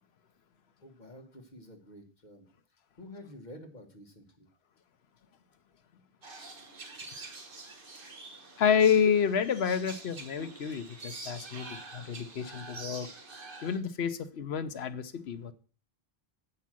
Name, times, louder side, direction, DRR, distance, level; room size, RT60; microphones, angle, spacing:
voice 1, 0.8-2.5 3.0-4.5, left 1 dB, 45° left, 1.7 m, -49 dB
sound 1, 6.2-13.8, right 3 dB, 60° right, 1.5 m, -46 dB
voice 2, 8.6-13.1 13.6-15.5, left 7 dB, 90° left, 1.1 m, -29 dB
8.3 x 5.6 x 7.5 m
omnidirectional pair, 1.0 m